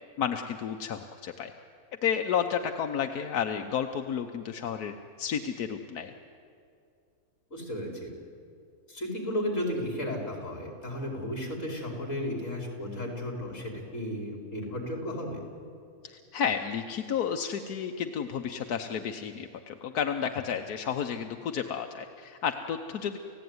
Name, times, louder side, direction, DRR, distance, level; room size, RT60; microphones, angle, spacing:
voice 1, 0.2-1.5 2.0-4.9 5.2-6.1 16.0-23.2, left 7 dB, 85° left, 5 dB, 1.5 m, -31 dB
voice 2, 7.5-8.1 8.9-15.4, left 1 dB, 55° left, 0 dB, 5.0 m, -34 dB
30.0 x 16.0 x 9.5 m, 2.5 s
omnidirectional pair, 1.6 m